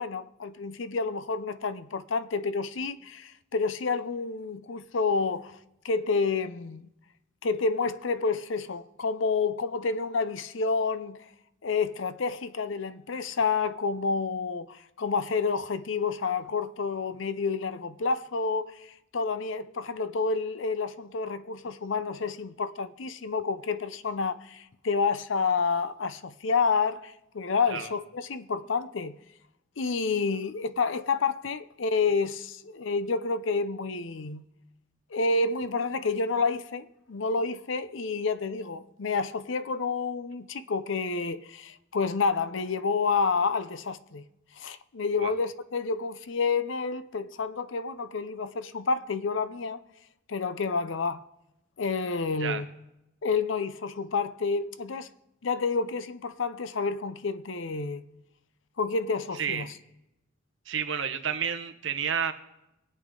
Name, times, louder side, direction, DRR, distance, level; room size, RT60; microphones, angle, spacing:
voice 1, 0.0-5.6 5.8-6.8 7.4-11.2 11.6-29.2 29.8-34.4 35.1-44.2 44.6-49.8 50.3-51.2 51.8-52.7 53.2-55.1 55.4-58.0 58.8-59.7, left 4 dB, 65° left, 0.6 m, -29 dB
voice 2, 59.4-59.7 60.7-62.3, right 7 dB, 65° right, 1.0 m, -30 dB
23.0 x 8.4 x 3.8 m
head